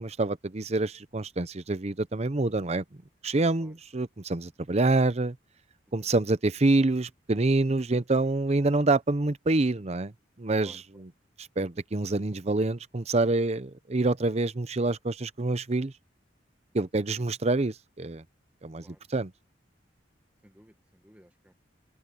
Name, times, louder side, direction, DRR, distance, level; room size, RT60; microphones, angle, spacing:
voice 1, 0.0-2.8 3.2-5.4 5.9-10.1 10.4-11.1 11.6-15.9 16.7-18.2 18.6-19.3, right 2 dB, 35° right, 0.7 m, -26 dB
voice 2, 10.6-11.0 17.2-17.3 18.8-19.2 20.4-21.5, equal, 10° right, 1.4 m, -56 dB
open air
head